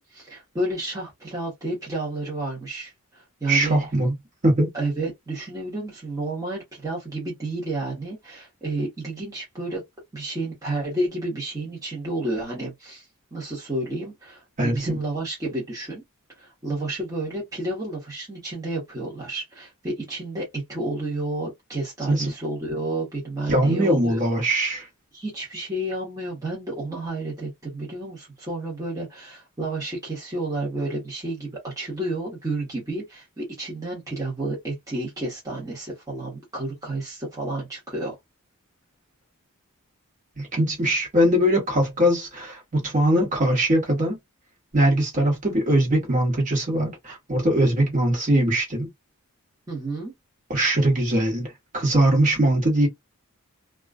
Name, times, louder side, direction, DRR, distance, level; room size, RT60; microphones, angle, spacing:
voice 1, 0.0-3.8 4.7-9.8 10.1-13.1 13.3-16.0 16.4-24.3 25.1-38.1 49.7-50.1, right 2 dB, 15° right, 1.0 m, -31 dB
voice 2, 3.5-4.1 4.4-4.7 14.6-15.0 22.1-22.3 23.5-24.9 40.4-44.2 44.7-48.9 50.5-52.9, right 1 dB, 35° right, 1.2 m, -21 dB
2.3 x 2.3 x 2.3 m
head